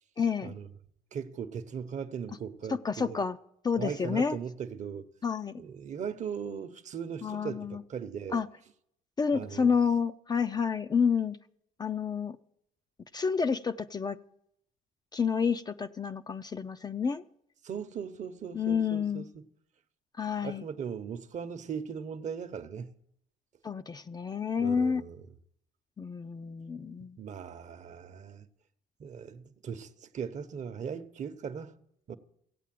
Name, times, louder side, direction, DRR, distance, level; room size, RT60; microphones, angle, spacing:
voice 1, 0.2-0.5 2.7-3.4 3.6-4.4 5.2-5.6 7.2-7.8 8.3-8.5 9.2-11.4 11.8-12.4 13.1-14.2 15.1-17.2 18.5-19.2 20.2-20.6 23.6-25.0 26.0-27.2, left 6 dB, 25° left, 0.4 m, -29 dB
voice 2, 1.1-3.2 3.8-5.1 5.6-8.4 9.3-9.7 17.6-19.4 20.4-23.0 24.6-25.2 27.2-28.5 29.0-31.7 32.1-32.2, right 7 dB, 45° right, 0.9 m, -38 dB
15.5 x 8.4 x 7.6 m
cardioid pair, 110°, 17 cm